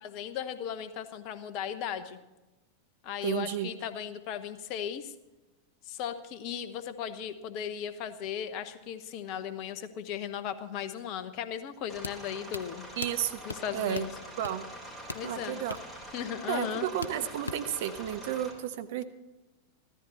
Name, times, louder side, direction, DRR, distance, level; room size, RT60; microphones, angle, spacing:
voice 1, 0.0-2.2 3.0-5.1 5.8-12.9 13.4-14.1 15.1-15.6 16.1-16.9, left 9 dB, 40° left, 11 dB, 1.0 m, -36 dB
voice 2, 3.2-3.7 13.0-13.4 13.7-14.1 14.4-14.6 15.2-15.8 16.5-19.0, right 10 dB, 55° right, 9 dB, 0.9 m, -32 dB
sound 1, 11.9-18.5, equal, 5° left, 4.2 m, -45 dB
sound 2, 12.0-17.9, left 3 dB, 75° left, 0.6 m, -43 dB
15.0 x 13.5 x 4.3 m, 1.1 s
figure-of-eight pair, 90°, 0 cm